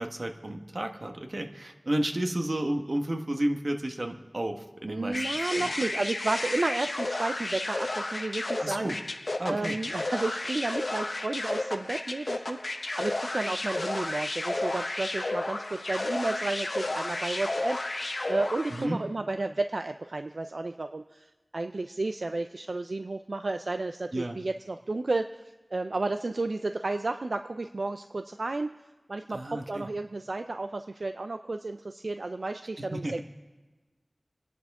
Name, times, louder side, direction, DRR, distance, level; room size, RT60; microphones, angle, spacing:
voice 1, 0.0-5.7 8.6-9.0 9.4-9.8 18.7-19.0 24.1-24.4 29.3-29.9 32.8-33.2, right 1 dB, 60° right, 4 dB, 1.3 m, -32 dB
voice 2, 4.9-8.9 9.5-25.4 25.7-28.7 29.1-33.2, right 2 dB, 80° right, 8 dB, 0.4 m, -32 dB
sound 1, 5.1-19.0, left 2 dB, 65° left, 0.9 m, -32 dB
26.5 x 11.0 x 3.6 m, 1.2 s
wide cardioid pair, 40°, 0 cm